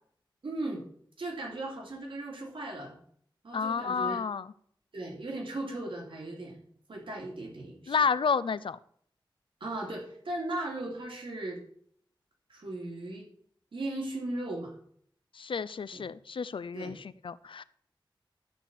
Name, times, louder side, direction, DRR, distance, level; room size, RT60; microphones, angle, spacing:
voice 1, 0.4-0.8 1.2-2.9 3.4-4.2 4.9-6.6 6.9-8.0 9.6-11.6 12.5-13.3 13.7-14.8 15.9-16.0 16.7-17.0, right 2 dB, 85° right, -1 dB, 2.7 m, -37 dB
voice 2, 3.5-4.5 7.9-8.8 15.3-17.6, left 5 dB, 90° left, 17 dB, 0.4 m, -30 dB
12.5 x 4.3 x 7.1 m, 0.63 s
wide cardioid pair, 80°, 9 cm